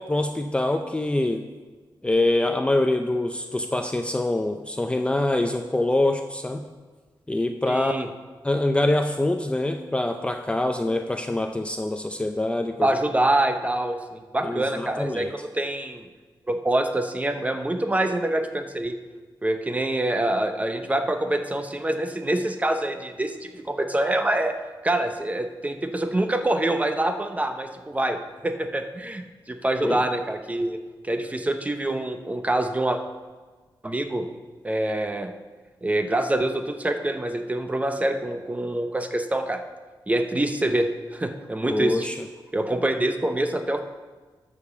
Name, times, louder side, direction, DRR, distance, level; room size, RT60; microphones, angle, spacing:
voice 1, 0.0-1.4 2.0-6.7 7.3-8.1 8.4-12.9 14.4-15.3 29.8-30.0 41.7-42.3, left 2 dB, 15° left, 6 dB, 0.5 m, -25 dB
voice 2, 7.7-8.1 12.8-16.1 16.5-18.9 19.4-24.6 24.8-28.2 28.4-30.8 31.0-33.0 33.8-34.3 34.6-35.3 35.8-39.6 40.1-42.1 42.5-43.8, right 1 dB, 15° right, 6 dB, 0.8 m, -25 dB
12.0 x 5.1 x 7.0 m, 1.4 s
wide cardioid pair, 115°, 8 cm